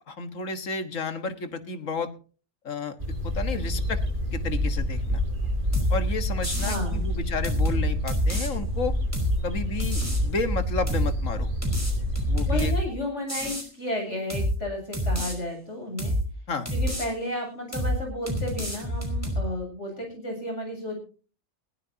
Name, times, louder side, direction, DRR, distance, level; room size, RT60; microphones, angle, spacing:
voice 1, 0.1-2.1 2.6-3.0 3.2-4.0 4.3-5.2 5.9-9.0 9.4-11.5 12.3-12.7 16.5-16.7, left 4 dB, 85° left, 9 dB, 1.9 m, -31 dB
sound 1, 3.0-12.6, equal, 40° right, 6.5 m, -28 dB
sound 2, 5.7-6.0 6.4-6.8 7.4-8.5 9.1-9.4 9.8-10.3 10.9-11.1 11.6-12.8 13.3-13.7 14.3-14.6 14.9-15.3 16.0-16.3 16.6-17.1 17.7-18.0 18.3-19.4, equal, 10° right, 4.7 m, -27 dB
voice 2, 6.6-7.0 12.5-16.1 16.7-21.0, left 1 dB, 65° left, 2 dB, 8.1 m, -33 dB
20.5 x 16.0 x 2.8 m, 0.38 s
omnidirectional pair, 1.3 m